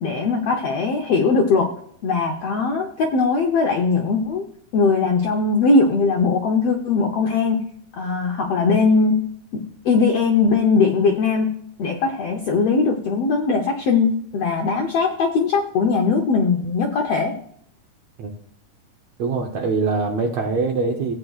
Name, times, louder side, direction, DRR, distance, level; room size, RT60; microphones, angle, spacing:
voice 1, 0.0-1.7 2.0-4.5 4.7-7.6 7.9-9.2 9.8-11.5 11.8-17.3, left 4 dB, 75° left, 2 dB, 1.4 m, -20 dB
voice 2, 19.2-21.1, right 4 dB, 70° right, 1 dB, 1.7 m, -23 dB
16.5 x 8.9 x 2.4 m, 0.67 s
omnidirectional pair, 4.0 m